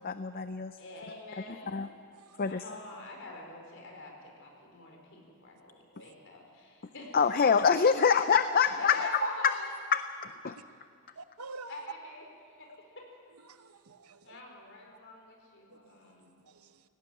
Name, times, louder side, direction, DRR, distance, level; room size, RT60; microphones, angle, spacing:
voice 1, 0.0-0.8 1.7-1.9 2.4-2.6 7.1-9.1 9.4-9.5 9.9-10.6, left 6 dB, 40° left, 11 dB, 0.5 m, -25 dB
voice 2, 0.8-1.8 2.5-7.5 8.8-9.7 11.7-13.0 14.2-16.3, left 2 dB, 60° left, 1 dB, 4.6 m, -44 dB
voice 3, 11.2-11.9 13.4-14.4 15.7-16.8, right 3 dB, 85° right, 10 dB, 1.0 m, -49 dB
18.0 x 17.5 x 9.1 m, 2.3 s
head